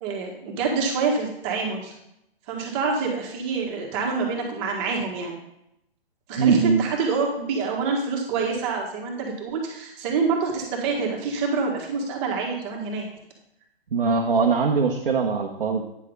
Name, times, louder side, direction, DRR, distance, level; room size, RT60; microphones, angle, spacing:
voice 1, 0.0-1.9 2.5-5.4 6.3-13.1, right 4 dB, 25° right, 0 dB, 1.8 m, -26 dB
voice 2, 6.4-6.8 13.9-15.8, right 5 dB, 60° right, 0 dB, 1.2 m, -21 dB
9.7 x 6.4 x 4.0 m, 0.81 s
figure-of-eight pair, 125°, 30 cm